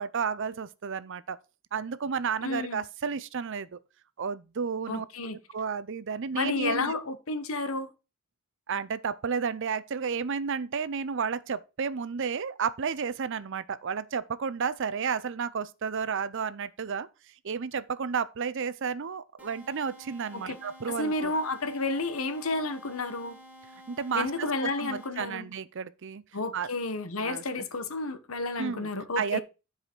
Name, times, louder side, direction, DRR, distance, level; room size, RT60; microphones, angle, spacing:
voice 1, 0.0-1.4 1.7-3.8 4.2-7.0 8.7-17.1 17.4-21.3 23.9-26.2 26.5-26.7 27.2-27.7 28.6-28.9 29.2-29.4, right 6 dB, 65° right, 0.6 m, -32 dB
voice 2, 2.4-2.8 4.9-5.4 6.3-7.9 20.3-20.6 20.9-23.4 24.1-25.5 26.3-29.4, left 3 dB, 90° left, 1.2 m, -31 dB
sound 1, 19.4-25.4, equal, 10° right, 2.2 m, -51 dB
9.9 x 4.9 x 4.5 m
head